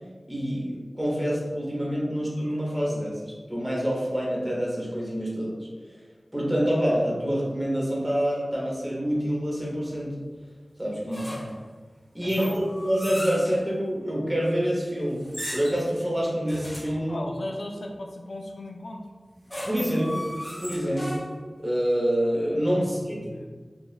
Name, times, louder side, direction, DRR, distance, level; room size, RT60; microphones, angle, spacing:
voice 1, 0.3-5.7 6.3-10.2 10.8-11.3 12.1-15.2 15.5-17.2 19.7-20.3 20.6-21.2 21.6-23.2, equal, 15° right, -5 dB, 0.8 m, -26 dB
voice 2, 11.1-11.5 12.2-12.6 17.1-19.0 19.7-19.9 22.8-23.5, left 1 dB, 85° left, 1 dB, 0.3 m, -37 dB
sound 1, 11.1-11.7 12.3-13.6 15.2-15.9 16.5-17.0 19.2-21.5, equal, 15° left, 0.7 m, -37 dB
3.1 x 2.2 x 2.3 m, 1.4 s
wide cardioid pair, 50°, 0 cm